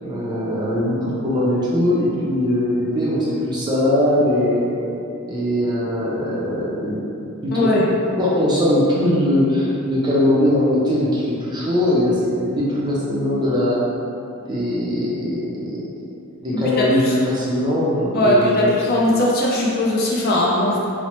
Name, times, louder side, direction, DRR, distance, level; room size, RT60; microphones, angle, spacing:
voice 1, 0.0-4.7 5.3-7.0 7.4-7.7 8.2-13.8 14.5-15.8 16.4-18.8, left 1 dB, 20° right, -7 dB, 0.4 m, -20 dB
voice 2, 7.5-7.9 16.5-17.1 18.1-20.9, left 1 dB, 45° left, -4 dB, 0.4 m, -19 dB
3.0 x 2.0 x 2.9 m, 2.7 s
head